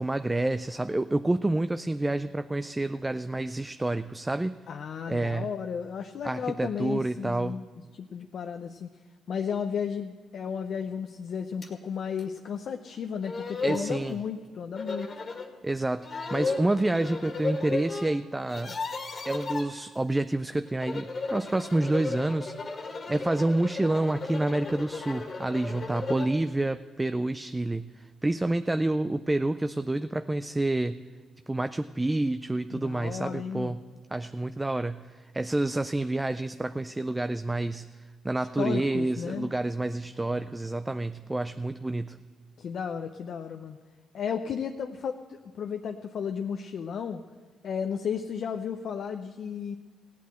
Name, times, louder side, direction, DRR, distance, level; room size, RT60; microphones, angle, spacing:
voice 1, 0.0-4.6 5.1-5.5 6.2-7.6 13.6-14.2 15.6-18.8 19.3-31.0 31.5-33.8 34.1-37.9 38.2-42.2, right 2 dB, 15° right, 11 dB, 0.4 m, -28 dB
voice 2, 4.7-7.7 7.9-8.9 9.3-15.1 32.7-33.8 38.4-39.5 42.6-43.8 44.1-47.2 47.6-49.8, left 7 dB, 65° left, 5 dB, 0.6 m, -34 dB
sound 1, 11.6-11.7 12.2-12.3 12.9-13.0 13.2-13.9 14.8-15.5 16.0-18.1 18.4-19.7 20.7-26.4, left 3 dB, 45° left, 1.9 m, -34 dB
16.0 x 8.4 x 7.9 m, 1.4 s
cardioid pair, 75°, 0 cm